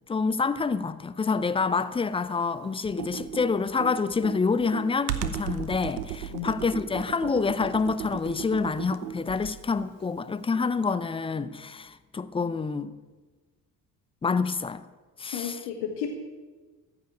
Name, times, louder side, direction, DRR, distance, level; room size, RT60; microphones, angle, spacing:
voice 1, 0.1-12.9 14.2-14.8 15.2-15.6, left 4 dB, 10° left, 0.5 m, -27 dB
Computer keyboard, 2.8-9.7, right 10 dB, 75° right, 0.9 m, -35 dB
voice 2, 15.3-16.2, left 7 dB, 55° left, 1.5 m, -33 dB
14.5 x 6.7 x 10.0 m
figure-of-eight pair, 50°, 50 cm